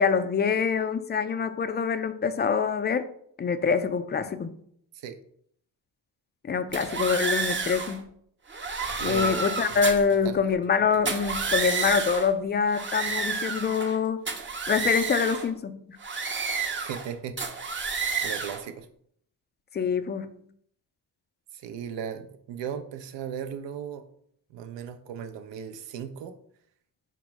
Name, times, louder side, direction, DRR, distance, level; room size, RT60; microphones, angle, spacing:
voice 1, 0.0-3.1 3.4-4.5 6.4-8.1 9.0-14.2 14.7-16.0 19.7-20.4, left 6 dB, 25° left, 11 dB, 0.3 m, -25 dB
sound 1, 6.7-8.0 8.5-10.1 10.9-12.3 12.7-14.0 14.3-15.5 16.0-17.1 17.4-18.6, right 4 dB, 25° right, 0.7 m, -30 dB
voice 2, 9.0-9.6 10.0-10.4 16.8-17.4 17.8-18.9 21.5-24.0 24.5-26.4, right 8 dB, 70° right, 8 dB, 0.6 m, -37 dB
4.3 x 2.0 x 4.5 m, 0.67 s
supercardioid pair, 50°, 45 cm